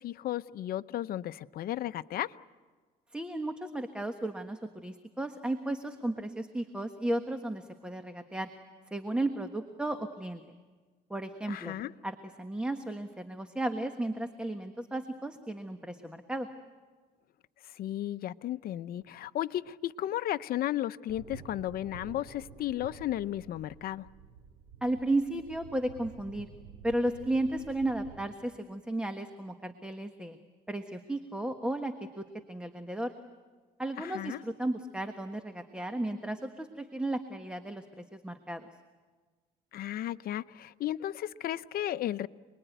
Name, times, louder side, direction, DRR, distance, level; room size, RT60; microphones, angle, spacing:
voice 1, 0.0-2.4 11.5-11.9 17.6-24.1 34.0-34.4 39.7-42.3, left 13 dB, 60° left, 14 dB, 0.8 m, -34 dB
voice 2, 3.1-8.5 8.9-10.4 11.1-11.7 12.0-16.5 24.8-26.5 26.8-30.4 30.7-33.1 33.8-38.7, right 1 dB, 5° right, 7 dB, 1.4 m, -34 dB
sound 1, 21.1-28.3, right 7 dB, 80° right, 3.8 m, -51 dB
29.0 x 21.5 x 9.3 m, 1.4 s
cardioid pair, 110°, 17 cm